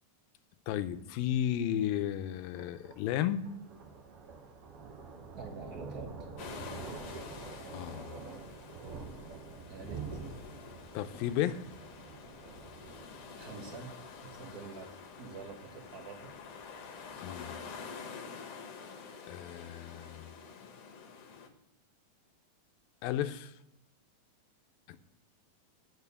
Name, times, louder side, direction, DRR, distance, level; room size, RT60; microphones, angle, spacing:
voice 1, 0.7-3.4 7.7-8.2 10.9-11.6 17.2-17.6 19.3-20.3 23.0-23.5 24.9-25.0, left 11 dB, 85° left, 11 dB, 2.5 m, -33 dB
Thunder, 1.0-17.9, right 4 dB, 60° right, 1.6 m, -48 dB
voice 2, 5.3-6.1 9.7-10.2 13.3-13.9 14.2-14.9 15.2-16.4, right 4 dB, 80° right, 1 dB, 0.8 m, -46 dB
sound 1, 6.4-21.5, left 5 dB, 65° left, 2.6 m, -48 dB
9.2 x 6.4 x 8.2 m, 0.85 s
omnidirectional pair, 4.1 m